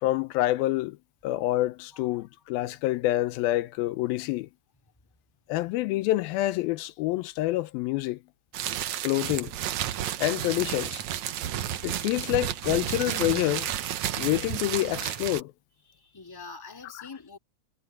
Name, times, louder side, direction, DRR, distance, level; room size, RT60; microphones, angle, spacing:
voice 1, 0.0-1.0 1.2-4.5 5.5-8.2 9.0-9.6 10.2-11.0 11.8-13.7 14.2-15.5 17.0-17.1, left 16 dB, 85° left, 2.5 m, -27 dB
voice 2, 1.9-2.2 15.9-17.4, left 4 dB, 5° left, 2.0 m, -45 dB
sound 1, 8.5-15.4, right 11 dB, 65° right, 1.9 m, -32 dB
omnidirectional pair, 4.2 m